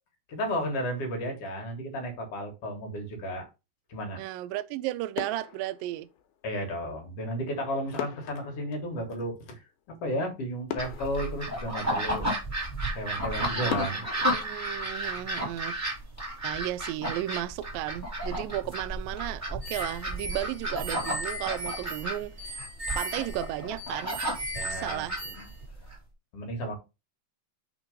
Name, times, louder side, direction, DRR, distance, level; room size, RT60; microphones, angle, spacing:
voice 1, 0.3-3.5 3.9-4.2 6.4-9.6 10.0-12.4 12.9-14.0 24.5-25.5 26.3-26.7, equal, 55° left, 1.8 m, -33 dB
voice 2, 4.2-6.1 14.3-15.8 16.4-22.6 23.0-24.2 24.6-25.2, right 14 dB, 85° right, 2.0 m, -34 dB
sound 1, 4.5-4.8 5.1-6.6 8.0-9.9 10.3-10.4 10.7-12.3 12.8-12.9 13.7-15.6 15.9-16.1, left 10 dB, 80° left, 2.4 m, -41 dB
sound 2, 10.8-26.0, right 1 dB, 5° right, 1.5 m, -33 dB
sound 3, 19.6-25.6, right 1 dB, 45° right, 0.7 m, -38 dB
6.1 x 3.6 x 5.1 m
omnidirectional pair, 4.5 m